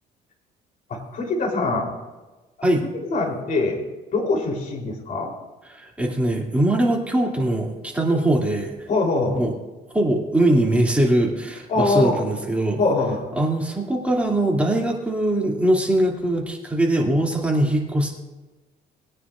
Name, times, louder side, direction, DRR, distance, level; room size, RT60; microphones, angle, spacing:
voice 1, 0.9-1.9 2.6-2.7 2.9-3.8 4.1-5.3 8.9-9.5 11.7-12.2 12.8-13.2, left 3 dB, 55° left, -1 dB, 3.7 m, -23 dB
voice 2, 5.7-8.9 9.3-9.5 9.9-12.8 13.3-18.2, right 1 dB, 10° right, -1 dB, 2.6 m, -21 dB
20.5 x 9.8 x 2.5 m, 1.2 s
cardioid pair, 110°, 17 cm